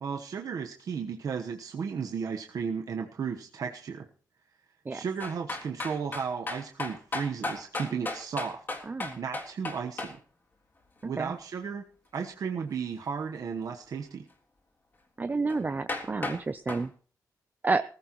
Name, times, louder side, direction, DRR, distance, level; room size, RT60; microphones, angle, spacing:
voice 1, 0.0-4.1 4.9-8.6 9.2-10.2 11.0-11.8 12.1-14.3, right 6 dB, 60° right, 3 dB, 1.1 m, -34 dB
sound 1, 5.2-10.1 15.5-15.6 15.9-16.4 16.7-16.8, left 2 dB, 30° left, 3.4 m, -34 dB
voice 2, 8.9-9.2 11.2-11.3 15.2-16.9 17.6-17.8, right 3 dB, 25° right, 11 dB, 0.6 m, -30 dB
19.0 x 15.0 x 3.1 m, 0.42 s
wide cardioid pair, 120°, 7 cm